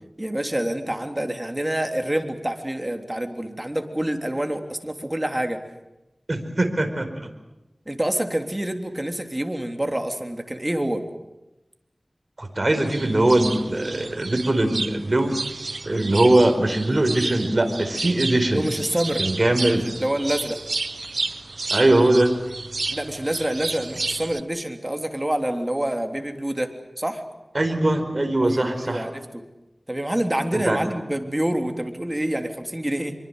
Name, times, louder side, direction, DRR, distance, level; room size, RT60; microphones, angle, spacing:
voice 1, 0.2-5.6 7.8-11.0 18.5-19.2 19.8-20.6 22.9-27.2 28.4-29.4 29.9-33.1, right 1 dB, 20° right, 5 dB, 3.4 m, -27 dB
voice 2, 6.3-7.3 12.4-15.4 15.8-18.7 19.2-19.8 21.7-22.3 27.5-29.0 30.5-30.8, right 1 dB, 45° right, 6 dB, 4.7 m, -21 dB
sound 1, 12.7-24.4, right 3 dB, 85° right, 0.9 m, -32 dB
25.0 x 24.0 x 8.1 m, 0.98 s
wide cardioid pair, 45°, 0 cm